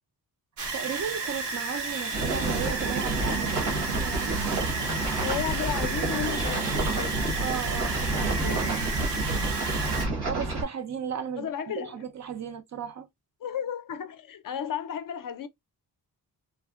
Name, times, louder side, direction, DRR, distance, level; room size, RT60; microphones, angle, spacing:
sound 1, 0.6-10.1, right 3 dB, 90° right, 1.0 m, -32 dB
voice 1, 0.7-4.4 7.4-8.9 10.2-13.1, right 7 dB, 45° right, 0.4 m, -35 dB
sound 2, 2.1-10.6, right 2 dB, 70° right, 1.2 m, -29 dB
voice 2, 5.2-7.2 11.4-12.0 13.4-15.5, left 9 dB, 55° left, 0.5 m, -33 dB
3.3 x 2.1 x 2.3 m
wide cardioid pair, 130°, 40 cm